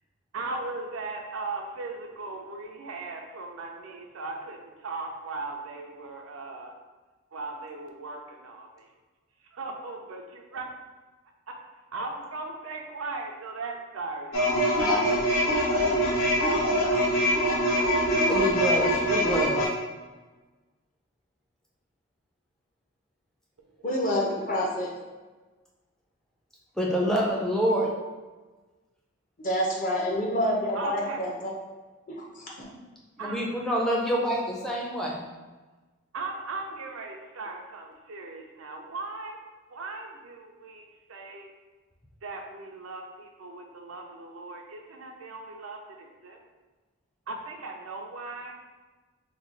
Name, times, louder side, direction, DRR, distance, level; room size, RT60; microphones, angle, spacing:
voice 1, 0.3-6.7 7.3-8.8 9.6-10.7 11.9-14.4 14.8-16.0 16.4-18.3 30.7-31.2 33.2-33.4 36.1-39.4 39.7-41.5 42.2-46.4 47.3-48.5, right 3 dB, 85° right, 2 dB, 0.5 m, -38 dB
sound 1, 14.3-19.7, equal, 85° left, 0.7 m, -24 dB
voice 2, 18.1-19.6 26.8-27.9 33.2-35.2, equal, 5° left, -3 dB, 0.4 m, -27 dB
voice 3, 23.8-24.9 29.4-31.5 32.1-32.7, equal, 40° left, -3 dB, 0.7 m, -28 dB
3.0 x 2.3 x 3.8 m, 1.3 s
head